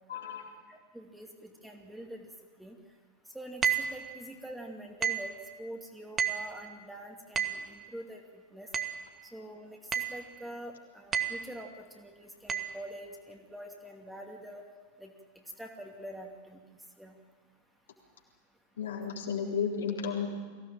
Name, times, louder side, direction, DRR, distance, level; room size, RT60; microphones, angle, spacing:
voice 1, 0.1-0.5 18.8-20.3, left 6 dB, 65° left, -1 dB, 3.9 m, -33 dB
voice 2, 0.7-2.3 2.6-2.8 3.3-8.7 9.3-14.6 15.0-15.1 15.6-17.2, right 1 dB, 5° right, 1 dB, 2.6 m, -45 dB
sound 1, 3.6-4.0 5.0-5.3 6.2-6.5 7.4-7.7 8.7-9.0 9.9-10.2 11.1-11.5 12.5-12.7, right 7 dB, 20° right, 1.6 m, -30 dB
23.0 x 16.5 x 9.1 m, 1.5 s
figure-of-eight pair, 90°, 0 cm